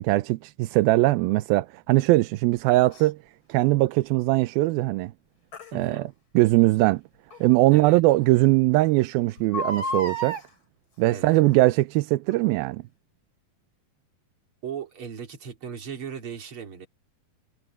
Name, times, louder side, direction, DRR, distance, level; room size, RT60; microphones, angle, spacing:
voice 1, 0.0-3.2 3.5-5.1 5.7-6.1 6.3-7.0 7.4-10.4 11.0-12.8, right 19 dB, 85° right, 2.5 m, -21 dB
Crying sobbing, 2.9-3.1 5.5-5.7 7.3-7.4 7.9-8.0 8.2-8.3 9.4-10.5 11.4-11.7 12.3-12.4, equal, 30° left, 5.4 m, -31 dB
voice 2, 5.7-6.1 7.7-8.0 11.1-11.4 14.6-16.9, right 7 dB, 35° right, 3.5 m, -37 dB
omnidirectional pair, 4.2 m